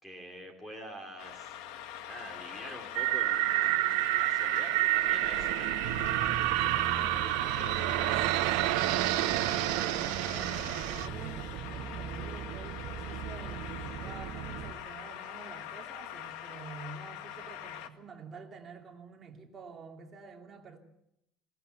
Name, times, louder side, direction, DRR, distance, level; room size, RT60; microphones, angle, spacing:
voice 1, 0.0-5.6 6.2-8.2, right 1 dB, 5° left, 2.9 m, -47 dB
sound 1, 1.2-17.9, left 10 dB, 85° left, 1.7 m, -44 dB
sound 2, 2.9-11.1, right 19 dB, 85° right, 0.7 m, -29 dB
sound 3, 5.8-14.7, right 7 dB, 55° right, 1.6 m, -39 dB
voice 2, 9.2-20.8, right 5 dB, 25° right, 2.7 m, -48 dB
20.0 x 18.0 x 8.0 m
cardioid pair, 175°, 0 cm